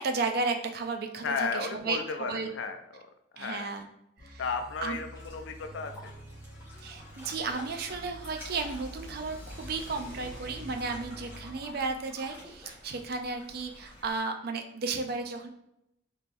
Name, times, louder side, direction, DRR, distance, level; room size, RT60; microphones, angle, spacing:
voice 1, 0.0-2.5 3.4-3.9 4.2-4.4 4.8-5.0 6.8-15.5, right 4 dB, 50° right, 5 dB, 0.4 m, -34 dB
voice 2, 1.2-3.0 3.3-3.7 4.4-6.1, left 4 dB, 65° left, 6 dB, 0.4 m, -34 dB
sound 1, 4.2-11.7, equal, 40° left, 0.8 m, -48 dB
sound 2, 5.1-14.2, left 1 dB, 10° right, 1.4 m, -51 dB
Car / Accelerating revving vroom, 7.4-14.1, equal, 5° left, 1.0 m, -49 dB
3.5 x 2.9 x 2.6 m, 0.81 s
head